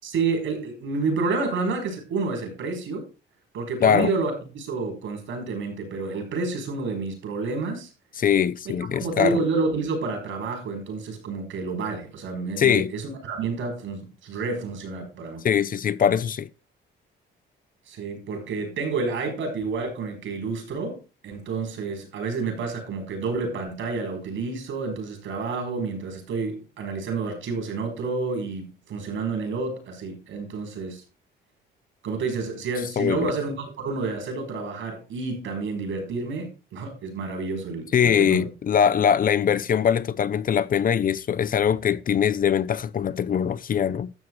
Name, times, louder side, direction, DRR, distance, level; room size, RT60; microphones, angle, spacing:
voice 1, 0.0-3.0 3.5-7.9 8.9-15.4 17.9-31.0 32.0-38.5, right 4 dB, 80° right, 5.2 m, -29 dB
voice 2, 3.8-4.1 8.2-9.4 12.6-12.9 15.4-16.5 33.0-33.3 37.9-44.1, left 8 dB, 45° left, 0.6 m, -22 dB
12.5 x 7.0 x 4.8 m
cardioid pair, 90°, 20 cm